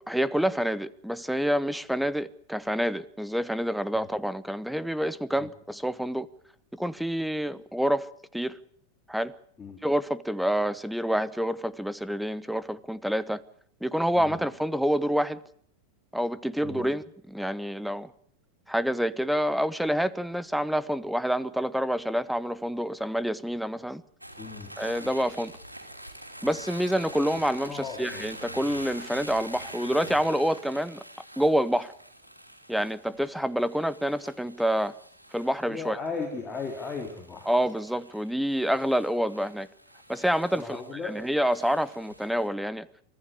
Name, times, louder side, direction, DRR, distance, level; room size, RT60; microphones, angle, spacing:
voice 1, 0.0-6.3 6.7-8.1 8.3-8.6 9.1-9.3 9.8-13.4 13.8-15.4 16.1-18.1 18.7-24.0 24.8-25.5 26.4-31.0 31.4-31.9 32.7-34.9 35.3-36.0 37.5-39.7 40.1-40.8 41.0-42.9, equal, ahead, 0.9 m, -27 dB
sound 1, 24.2-42.5, right 1 dB, 85° right, 3.1 m, -45 dB
voice 2, 24.4-25.1 27.7-28.4 35.6-37.5 40.5-41.2, left 4 dB, 20° left, 3.5 m, -37 dB
25.0 x 14.5 x 8.3 m
figure-of-eight pair, 90°, 0 cm